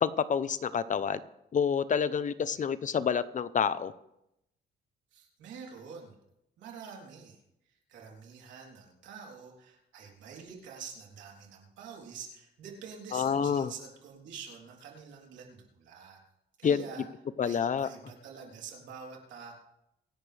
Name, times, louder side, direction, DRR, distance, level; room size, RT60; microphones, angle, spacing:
voice 1, 0.0-1.2 1.5-3.9 13.1-13.7 16.6-16.8 17.4-17.9, left 7 dB, 45° left, 14 dB, 0.8 m, -28 dB
voice 2, 5.1-6.2 6.6-7.4 7.7-16.2 16.6-17.1 17.4-19.5, right 6 dB, 90° right, -1 dB, 3.6 m, -47 dB
25.0 x 11.0 x 3.5 m, 0.83 s
cardioid pair, 105°, 18 cm